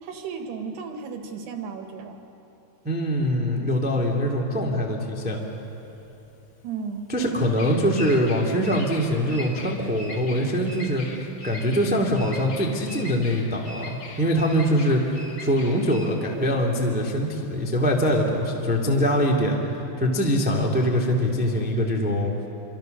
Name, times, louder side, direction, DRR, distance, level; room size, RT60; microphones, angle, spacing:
voice 1, 0.0-2.2 6.6-7.1, right 5 dB, 75° right, 4 dB, 3.6 m, -34 dB
voice 2, 2.8-5.4 7.1-11.0 11.4-19.6 20.0-22.3, equal, 5° right, -1 dB, 0.9 m, -23 dB
Bird vocalization bird call bird song, 5.2-18.4, left 1 dB, 45° left, 1.8 m, -41 dB
27.5 x 24.5 x 6.7 m, 3.0 s
omnidirectional pair, 4.9 m